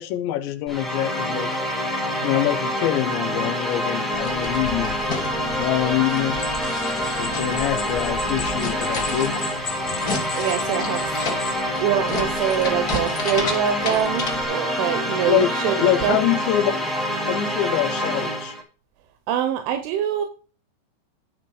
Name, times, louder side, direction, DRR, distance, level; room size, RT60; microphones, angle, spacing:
voice 1, 0.0-1.5 2.2-5.0 5.6-6.4 7.2-9.4 9.9-10.0 15.3-15.5 15.8-16.9 17.3-18.6, left 13 dB, 80° left, 12 dB, 3.0 m, -24 dB
sound 1, 0.7-18.6, equal, ahead, 1.0 m, -26 dB
sound 2, 4.1-14.4, left 3 dB, 60° left, 0.9 m, -33 dB
sound 3, 6.4-11.6, left 5 dB, 40° left, 2.0 m, -37 dB
voice 2, 10.4-11.0 11.8-16.2 19.3-20.3, right 9 dB, 90° right, 7 dB, 3.6 m, -24 dB
11.5 x 7.0 x 4.9 m, 0.37 s
omnidirectional pair, 5.4 m